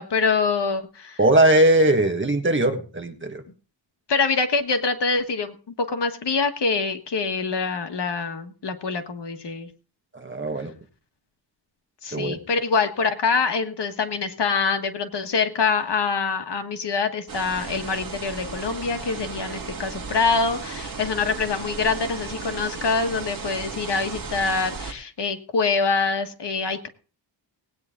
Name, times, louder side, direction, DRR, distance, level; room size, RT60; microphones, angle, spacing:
voice 1, 0.0-1.2 4.1-9.7 12.0-26.9, left 4 dB, 60° left, 6 dB, 1.5 m, -25 dB
voice 2, 1.2-3.4 10.1-10.7 12.1-12.4, right 1 dB, 25° right, 5 dB, 1.5 m, -20 dB
sound 1, 17.3-24.9, right 4 dB, 45° right, 1.9 m, -35 dB
19.0 x 9.2 x 3.8 m, 0.38 s
wide cardioid pair, 165°, 45 cm